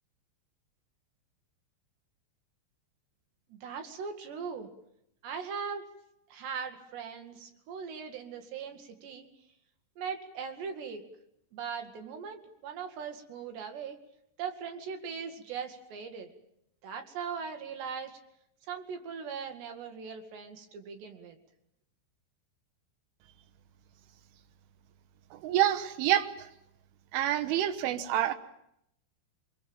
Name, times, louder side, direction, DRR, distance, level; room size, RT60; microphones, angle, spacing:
voice 1, 3.5-4.7 5.2-5.9 6.3-9.3 10.0-11.1 11.5-14.0 14.4-16.3 16.8-18.2 18.7-21.4, right 6 dB, 65° right, 5 dB, 4.3 m, -39 dB
voice 2, 25.3-26.5 27.1-28.4, right 12 dB, 85° right, 10 dB, 3.7 m, -27 dB
29.0 x 21.5 x 7.3 m, 0.78 s
omnidirectional pair, 5.5 m